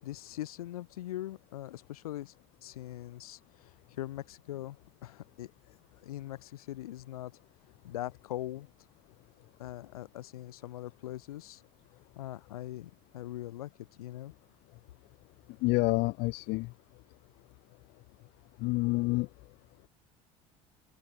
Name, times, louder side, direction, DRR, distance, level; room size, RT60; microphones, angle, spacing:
voice 1, 0.0-2.3 2.6-5.5 6.0-7.3 7.8-8.7 9.6-11.6 12.1-13.7 14.0-14.3, left 14 dB, 85° left, 6.8 m, -41 dB
voice 2, 15.6-16.7 18.6-19.3, left 24 dB, 65° left, 1.3 m, -28 dB
open air
hypercardioid pair, 70°, 18 cm